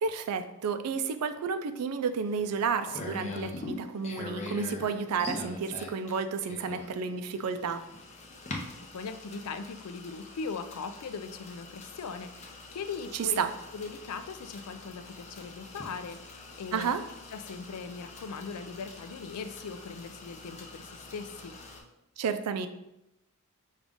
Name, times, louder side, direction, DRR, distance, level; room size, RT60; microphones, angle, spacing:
voice 1, 0.0-7.8 13.1-13.5 16.7-17.0 22.2-22.7, right 6 dB, 85° right, 10 dB, 0.4 m, -31 dB
sound 1, 2.2-21.8, left 2 dB, 30° left, 0.6 m, -44 dB
voice 2, 8.9-13.4 13.7-16.9 17.3-21.5, left 5 dB, 80° left, 10 dB, 0.4 m, -40 dB
5.2 x 2.4 x 3.5 m, 0.88 s
head